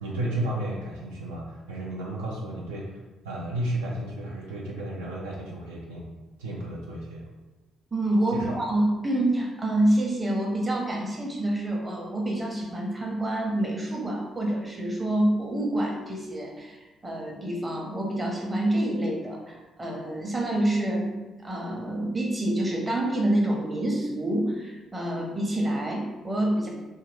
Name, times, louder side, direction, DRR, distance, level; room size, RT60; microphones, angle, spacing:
voice 1, 0.0-3.0 3.2-6.1 6.4-7.2 8.3-8.6, right 1 dB, 80° right, -4 dB, 0.4 m, -33 dB
voice 2, 7.9-21.1 21.4-26.7, right 1 dB, 25° right, -1 dB, 0.8 m, -27 dB
2.7 x 2.3 x 3.3 m, 1.1 s
figure-of-eight pair, 45°, 0 cm